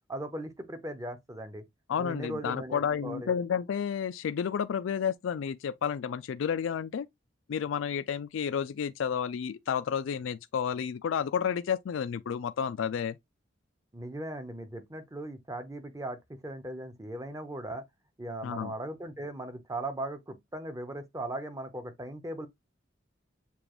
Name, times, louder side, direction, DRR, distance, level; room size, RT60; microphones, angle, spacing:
voice 1, 0.1-1.6 2.0-3.3 13.9-17.8 18.2-22.5, right 1 dB, 15° right, 0.7 m, -38 dB
voice 2, 1.9-7.1 7.5-13.2 18.4-18.7, left 7 dB, 85° left, 0.3 m, -31 dB
6.9 x 2.3 x 3.0 m
head